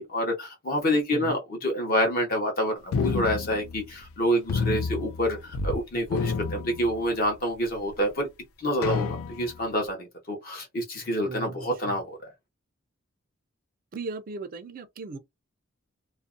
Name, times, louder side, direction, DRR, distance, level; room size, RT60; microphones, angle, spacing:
voice 1, 0.0-8.3 8.6-12.2, equal, 45° left, 0.7 m, -27 dB
sound 1, 2.9-4.2 4.5-5.8 6.0-7.4 7.9-8.0 8.8-9.7, left 4 dB, 80° left, 0.4 m, -30 dB
voice 2, 11.2-12.0 13.9-15.2, right 3 dB, 40° right, 0.4 m, -37 dB
2.5 x 2.1 x 2.5 m
head